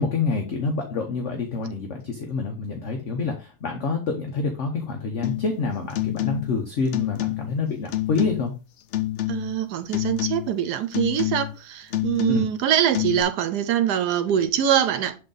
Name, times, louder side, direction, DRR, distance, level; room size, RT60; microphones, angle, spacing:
voice 1, 0.0-8.5 12.3-12.5, left 4 dB, 50° left, 1.1 m, -27 dB
sound 1, 5.2-5.6 5.9-6.6 6.9-7.6 7.9-8.6 8.9-9.6 9.9-10.6 10.9-11.6 11.9-12.6 12.9-13.2, left 14 dB, 70° left, 0.6 m, -28 dB
voice 2, 9.3-15.2, right 10 dB, 85° right, 1.2 m, -23 dB
7.7 x 3.8 x 3.9 m
omnidirectional pair, 1.7 m